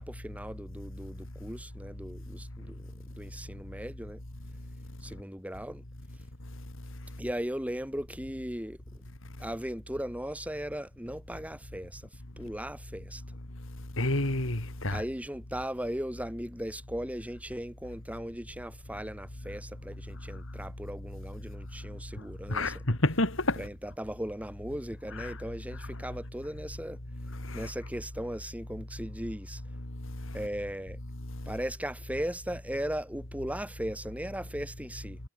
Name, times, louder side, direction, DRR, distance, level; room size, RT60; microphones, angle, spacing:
voice 1, 0.0-4.2 5.0-5.8 7.2-9.0 9.4-12.1 12.4-13.2 14.9-22.8 23.6-27.0 27.5-29.6 30.3-31.0 31.5-35.2, equal, 5° right, 5.6 m, -37 dB
voice 2, 14.0-15.0 22.5-23.6 25.2-25.3 27.4-27.7, left 2 dB, 60° left, 3.0 m, -28 dB
head